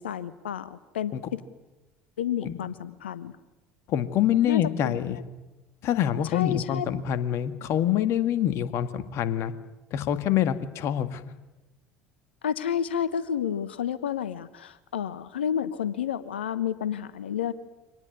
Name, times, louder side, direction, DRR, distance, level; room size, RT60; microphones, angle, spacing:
voice 1, 0.0-1.4 2.2-3.3 4.5-5.0 6.3-6.9 12.4-17.5, left 9 dB, 75° left, 16 dB, 1.0 m, -30 dB
voice 2, 3.9-5.2 5.8-9.5 9.9-11.2, left 10 dB, 50° left, 11 dB, 1.9 m, -25 dB
25.0 x 19.0 x 9.7 m, 1.1 s
figure-of-eight pair, 65°, 6 cm